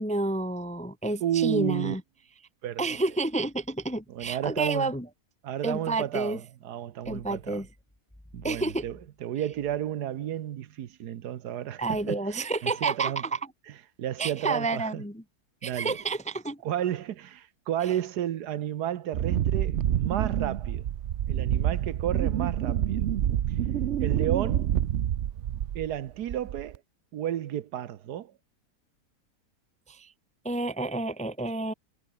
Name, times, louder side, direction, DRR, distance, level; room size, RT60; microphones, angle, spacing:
voice 1, 0.0-2.0 2.8-5.1 5.6-6.4 7.1-7.7 8.4-8.8 11.8-13.4 14.2-15.2 15.6-16.6 29.9-30.1 30.4-31.7, right 2 dB, 5° left, 0.6 m, -30 dB
voice 2, 1.2-1.9 2.6-3.0 4.1-4.9 5.4-7.6 8.3-12.2 12.6-13.2 14.0-15.0 15.6-16.0 16.6-20.8 21.3-23.1 24.0-24.7 25.7-26.8 27.1-28.3, right 11 dB, 80° right, 1.5 m, -32 dB
Wind, 19.1-26.0 26.3-26.8, right 10 dB, 55° right, 0.9 m, -27 dB
omnidirectional pair, 1.7 m